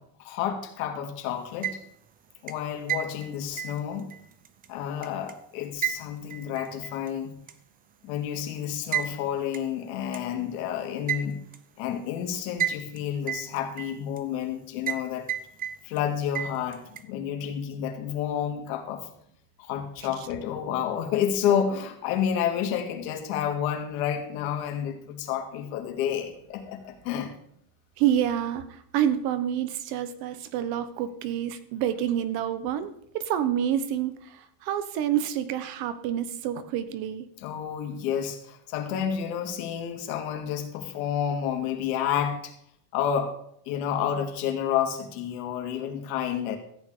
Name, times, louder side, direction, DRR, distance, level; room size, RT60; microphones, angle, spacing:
voice 1, 0.0-1.8 2.4-4.1 4.7-7.3 8.0-11.4 11.8-15.3 15.8-19.1 19.6-27.3 37.4-42.5 42.9-43.3 43.7-46.6, left 9 dB, 85° left, 3 dB, 2.6 m, -30 dB
sound 1, 1.4-2.1 2.5-5.3 5.8-7.1 7.5-7.6 8.9-9.1 9.5-9.6 10.1-10.2 11.1-11.6 12.6-13.0 13.3-14.2 14.9-15.0 15.3-16.0 16.3-17.0, right 10 dB, 20° right, 0.6 m, -31 dB
voice 2, 28.0-37.3, right 10 dB, 60° right, 12 dB, 1.3 m, -28 dB
14.0 x 9.0 x 5.0 m, 0.69 s
cardioid pair, 165°, 41 cm